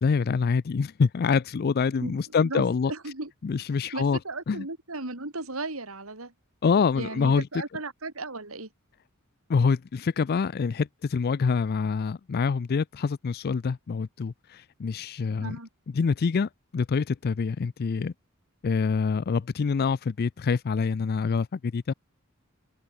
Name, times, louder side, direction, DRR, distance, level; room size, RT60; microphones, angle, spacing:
voice 1, 0.0-2.9 3.4-4.2 4.5-4.7 6.6-7.5 9.5-15.6 15.9-18.1 18.6-21.9, left 5 dB, 45° left, 0.4 m, -26 dB
voice 2, 2.9-3.3 3.9-6.3 7.0-8.7 15.4-15.7, right 2 dB, 75° right, 3.5 m, -35 dB
head